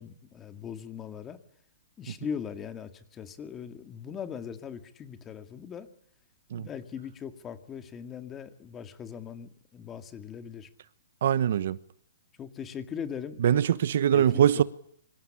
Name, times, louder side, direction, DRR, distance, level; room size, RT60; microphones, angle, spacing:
voice 1, 0.0-1.4 2.0-5.9 6.5-10.7 12.4-13.6 14.1-14.6, left 7 dB, 15° left, 1.9 m, -40 dB
voice 2, 11.2-11.8 13.4-14.6, right 9 dB, 55° right, 1.1 m, -23 dB
26.0 x 25.5 x 8.7 m
hypercardioid pair, 165°, 0 cm